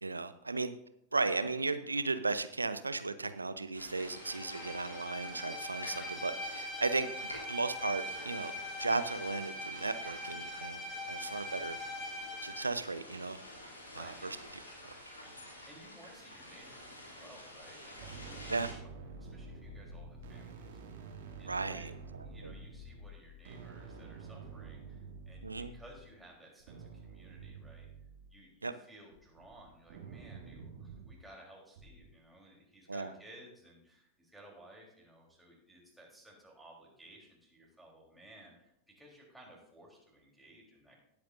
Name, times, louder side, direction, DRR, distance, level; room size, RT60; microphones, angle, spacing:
voice 1, 0.0-0.7 1.1-7.1 7.5-8.5 8.8-11.8 12.4-13.4 13.9-14.4 18.5-18.7 21.5-21.9 22.4-22.5 25.4-25.7 28.6-28.7 32.9-33.1, right 3 dB, 80° right, 12 dB, 0.7 m, -35 dB
sound 1, 3.7-18.7, left 1 dB, 75° left, 2.9 m, -50 dB
Bowed string instrument, 4.1-12.7, left 1 dB, 20° left, 2.2 m, -42 dB
voice 2, 6.9-7.3 11.0-11.5 13.9-14.3 15.7-18.9 19.2-20.8 21.4-27.9 28.3-41.0, right 1 dB, 5° right, -3 dB, 3.7 m, -57 dB
sound 2, 18.0-26.0 26.6-28.3 29.1-31.2 31.8-32.1, right 4 dB, 55° right, 2.3 m, -49 dB
18.0 x 8.6 x 2.6 m, 0.76 s
figure-of-eight pair, 90°, 0 cm